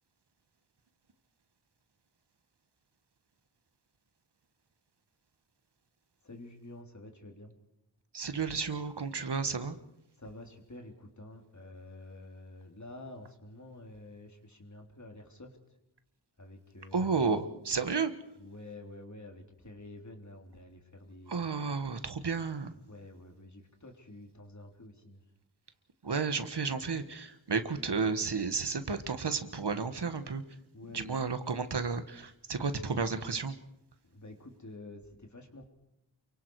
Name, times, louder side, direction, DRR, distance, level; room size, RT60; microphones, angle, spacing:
voice 1, 6.2-7.5 10.2-15.6 16.4-17.2 18.4-21.3 22.9-25.2 30.7-31.4 34.0-35.7, left 2 dB, 40° left, 3 dB, 3.4 m, -49 dB
voice 2, 8.1-9.8 16.9-18.1 21.3-22.7 26.0-30.4 30.9-33.5, right 4 dB, 65° right, 9 dB, 1.6 m, -32 dB
28.5 x 24.0 x 4.8 m, 0.81 s
wide cardioid pair, 85°, 43 cm